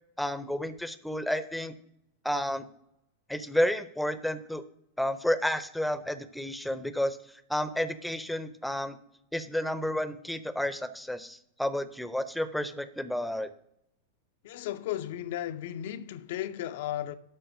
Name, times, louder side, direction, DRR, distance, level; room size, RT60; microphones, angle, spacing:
voice 1, 0.2-1.7 2.2-2.7 3.3-4.6 5.0-7.2 7.5-9.0 9.3-13.5, left 1 dB, ahead, 0.7 m, -31 dB
voice 2, 14.4-17.2, left 12 dB, 55° left, 0.6 m, -35 dB
12.5 x 4.2 x 6.6 m
figure-of-eight pair, 90°, 0 cm